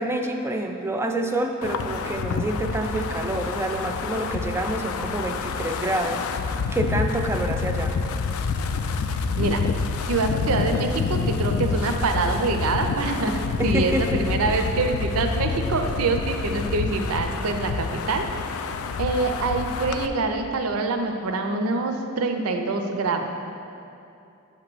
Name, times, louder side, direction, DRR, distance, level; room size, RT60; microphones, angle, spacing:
voice 1, 0.0-8.0 13.6-14.6, right 1 dB, 10° right, 4 dB, 0.4 m, -28 dB
Wind, 1.6-20.1, left 5 dB, 75° left, 0.3 m, -28 dB
voice 2, 10.1-18.3 19.0-23.3, right 3 dB, 90° right, 5 dB, 0.5 m, -25 dB
8.1 x 2.9 x 6.0 m, 2.6 s
head